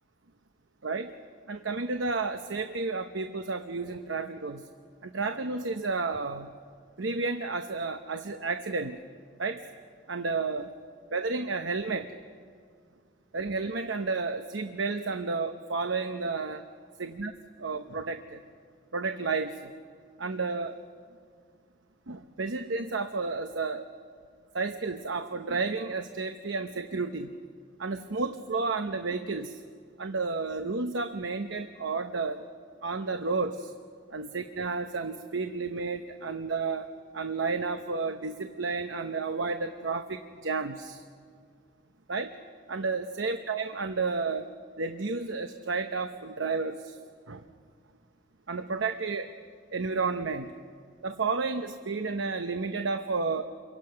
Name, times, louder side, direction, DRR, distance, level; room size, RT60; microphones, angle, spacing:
voice 1, 1.5-4.6 5.0-6.5 7.0-9.0 9.4-9.6 10.1-10.7 11.1-12.1 13.3-16.6 17.2-17.3 17.6-18.4 18.9-19.7 20.2-20.8 22.1-23.9 24.5-27.3 27.8-29.6 30.0-32.4 32.8-33.7 34.1-36.9 37.1-41.0 42.1-42.3 42.7-44.5 44.8-47.0 47.3-47.4 48.5-49.3 49.7-50.5 51.0-53.4, right 4 dB, 80° right, 7 dB, 0.9 m, -31 dB
29.0 x 23.5 x 5.8 m, 2.1 s
head